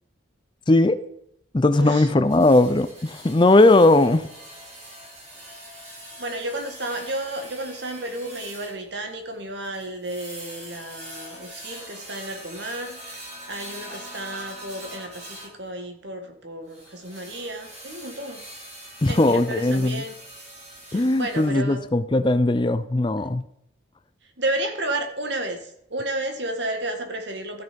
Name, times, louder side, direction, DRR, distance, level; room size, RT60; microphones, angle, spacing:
voice 1, 0.7-1.0 1.5-4.2 19.0-20.0 20.9-23.4, left 2 dB, 25° left, 12 dB, 0.5 m, -18 dB
voice 2, 1.8-2.1 6.2-18.5 19.1-20.2 20.9-21.8 24.4-27.6, right 1 dB, 65° right, 5 dB, 1.7 m, -32 dB
sound 1, 2.2-15.6 16.7-21.5, right 1 dB, 35° right, 3.4 m, -43 dB
13.5 x 6.7 x 5.2 m, 0.76 s
head